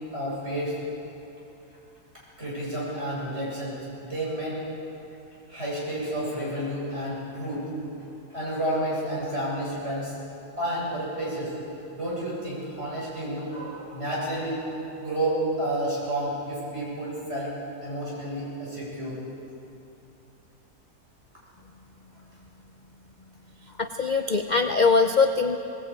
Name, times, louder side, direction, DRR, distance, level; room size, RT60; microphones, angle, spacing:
voice 1, 0.1-0.8 2.4-4.6 5.5-7.7 8.3-10.1 10.6-11.5 11.9-17.5 17.8-19.2, right 1 dB, 40° right, -6 dB, 8.1 m, -30 dB
voice 2, 23.8-25.6, left 4 dB, 40° left, 6 dB, 0.6 m, -22 dB
20.5 x 18.5 x 9.0 m, 2.8 s
omnidirectional pair, 1.7 m